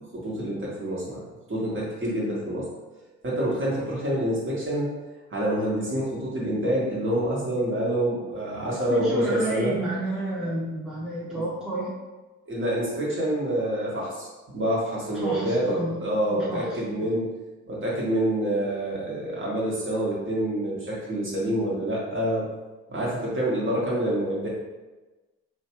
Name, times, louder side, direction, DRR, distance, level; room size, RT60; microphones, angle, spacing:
voice 1, 0.1-1.2 1.5-2.7 3.2-4.9 5.3-9.7 11.3-11.4 12.5-14.3 14.5-17.3 17.7-22.5 22.9-24.5, right 1 dB, 40° right, -5 dB, 1.4 m, -27 dB
voice 2, 8.9-11.9 15.1-16.0 16.3-17.1, right 1 dB, ahead, -6 dB, 0.7 m, -31 dB
3.1 x 2.2 x 3.0 m, 1.1 s
hypercardioid pair, 50°, 32 cm